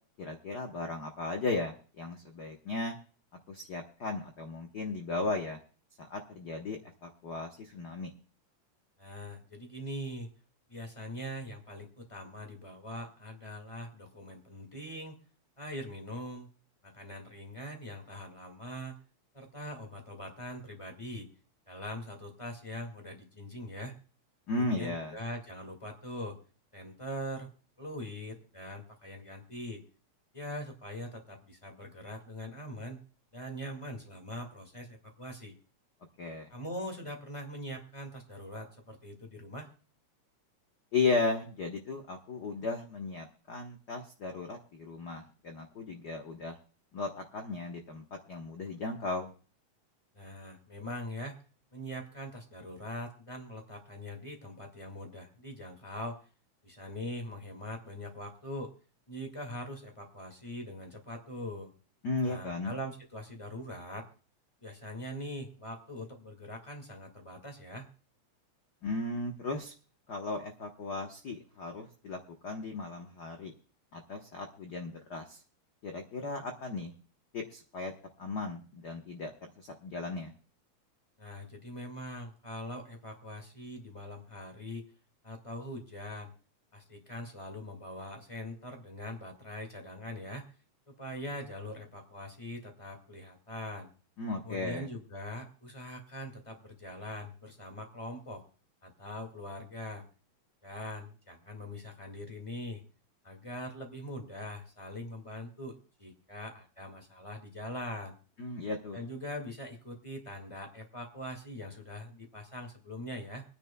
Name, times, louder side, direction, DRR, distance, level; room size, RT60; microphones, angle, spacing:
voice 1, 0.2-2.9 3.5-5.6 6.0-8.1 24.5-25.2 36.2-36.5 40.9-46.6 46.9-49.3 62.0-62.8 68.8-69.7 70.1-73.5 73.9-75.4 75.8-76.9 77.3-77.9 78.2-80.3 94.2-94.9 108.4-109.0, left 3 dB, 60° left, 3 dB, 1.0 m, -36 dB
voice 2, 9.0-10.3 10.7-15.2 15.6-16.5 16.8-18.9 19.3-21.3 21.7-23.9 24.6-26.4 26.7-27.5 27.8-29.8 30.3-33.0 33.3-35.5 36.5-39.7 50.1-51.4 51.7-56.2 56.6-58.7 59.1-61.7 62.2-64.1 64.6-67.9 81.2-84.8 85.2-86.3 86.7-90.5 90.9-93.9 94.4-98.4 98.8-100.0 100.6-102.8 103.2-108.1 108.9-113.4, left 1 dB, 15° left, 4 dB, 1.5 m, -42 dB
25.0 x 10.0 x 2.2 m, 0.39 s
omnidirectional pair, 3.4 m